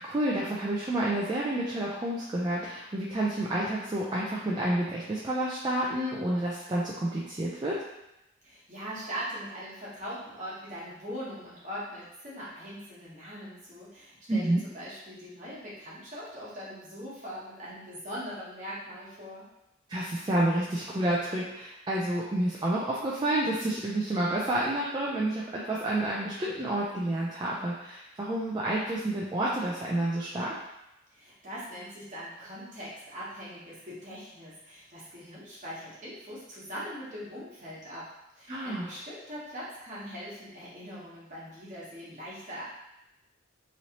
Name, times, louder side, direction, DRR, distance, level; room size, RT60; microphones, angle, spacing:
voice 1, 0.0-7.8 14.3-14.6 19.9-30.5 38.5-38.9, right 1 dB, 20° right, -5 dB, 0.3 m, -29 dB
voice 2, 8.4-19.4 31.1-42.6, equal, 40° right, -8 dB, 1.1 m, -41 dB
3.0 x 2.7 x 2.8 m, 0.89 s
head